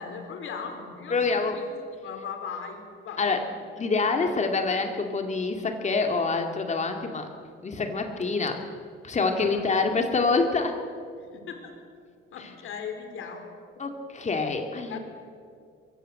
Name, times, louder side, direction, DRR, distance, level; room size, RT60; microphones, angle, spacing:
voice 1, 0.0-3.5 3.8-3.9 9.5-9.7 11.2-11.8 12.3-13.6 14.2-14.3 14.9-15.0, left 6 dB, 75° left, 5 dB, 4.0 m, -38 dB
voice 2, 1.1-1.6 3.2-3.4 3.8-7.3 7.6-8.6 9.0-10.7 12.4-12.5 13.8-15.0, left 4 dB, 35° left, 4 dB, 2.4 m, -26 dB
24.0 x 22.5 x 7.8 m, 2.3 s
cardioid pair, 130°, 21 cm